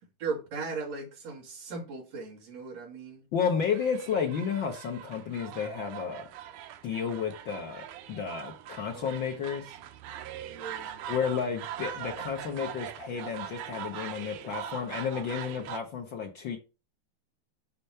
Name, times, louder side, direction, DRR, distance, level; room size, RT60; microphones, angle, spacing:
voice 1, 0.2-3.3 8.9-9.2 10.4-11.0, right 4 dB, 60° right, 3.0 m, -38 dB
voice 2, 3.3-6.3 6.8-9.8 11.1-16.6, left 6 dB, 75° left, 1.1 m, -32 dB
sound 1, 3.6-15.8, right 10 dB, 85° right, 2.3 m, -42 dB
7.0 x 4.4 x 5.6 m
omnidirectional pair, 3.5 m